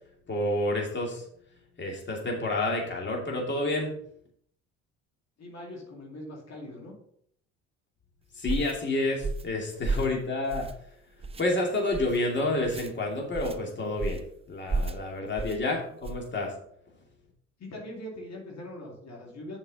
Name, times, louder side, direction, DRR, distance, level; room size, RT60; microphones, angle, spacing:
voice 1, 0.3-1.3 1.8-3.9 8.3-10.7 11.4-16.5, left 2 dB, 35° left, -1 dB, 2.6 m, -29 dB
voice 2, 5.4-6.9 15.8-15.9 17.6-19.6, left 1 dB, 55° left, -2 dB, 2.5 m, -42 dB
sound 1, 8.5-8.7 9.2-9.5 9.8-10.2 10.5-10.9 11.2-11.4 11.9-12.2 12.6-12.9 13.3-13.6 14.0-14.3 14.7-15.0 15.4-15.6 16.0-16.3, right 3 dB, 20° right, 0.6 m, -32 dB
7.1 x 5.4 x 5.3 m, 0.67 s
supercardioid pair, 75°, 32 cm